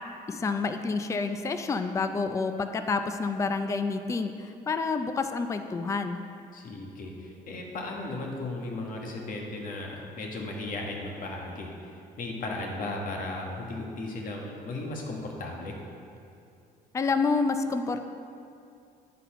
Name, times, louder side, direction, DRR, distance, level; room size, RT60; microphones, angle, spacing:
voice 1, 0.3-6.2 16.9-18.0, left 4 dB, 20° left, 8 dB, 0.4 m, -28 dB
voice 2, 6.5-15.8, left 2 dB, 55° left, 0 dB, 1.5 m, -36 dB
10.5 x 4.2 x 5.6 m, 2.5 s
cardioid pair, 110°, 17 cm